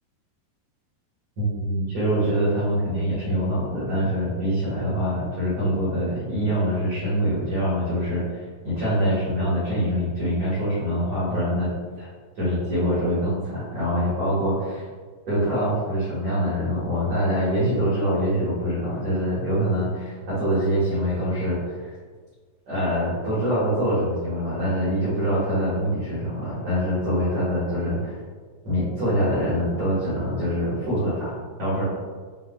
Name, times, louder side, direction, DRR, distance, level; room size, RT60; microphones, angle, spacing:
voice 1, 1.4-11.7 12.0-12.1 12.3-14.9 15.3-21.9 22.7-28.2 28.6-31.8, equal, 70° right, -11 dB, 1.4 m, -24 dB
7.6 x 2.8 x 2.3 m, 1.5 s
omnidirectional pair, 5.3 m